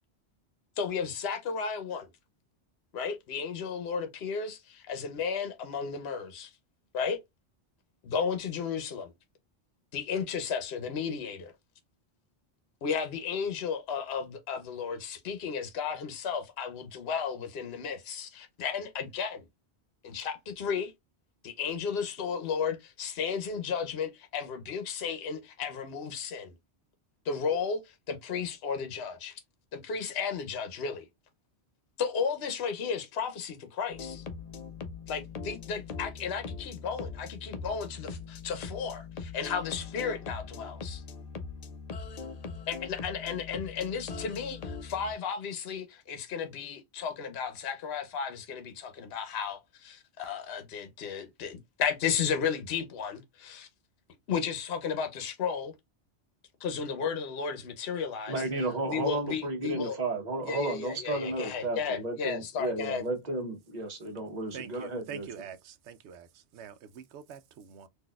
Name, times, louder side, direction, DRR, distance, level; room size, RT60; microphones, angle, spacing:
voice 1, 0.8-2.1 2.9-6.5 6.9-7.2 8.0-9.1 9.9-11.5 12.8-19.4 20.0-20.9 21.4-26.5 27.2-29.4 29.7-31.1 32.0-34.2 35.1-41.0 42.7-53.7 54.3-55.7 56.6-58.4 58.9-60.0 60.4-63.0, left 6 dB, 65° left, 0.9 m, -34 dB
sound 1, 33.9-45.2, left 5 dB, 50° left, 0.5 m, -41 dB
voice 2, 58.3-65.3, right 2 dB, 40° right, 1.2 m, -33 dB
voice 3, 64.5-67.9, right 8 dB, 80° right, 0.9 m, -45 dB
4.0 x 2.7 x 2.2 m
omnidirectional pair, 1.1 m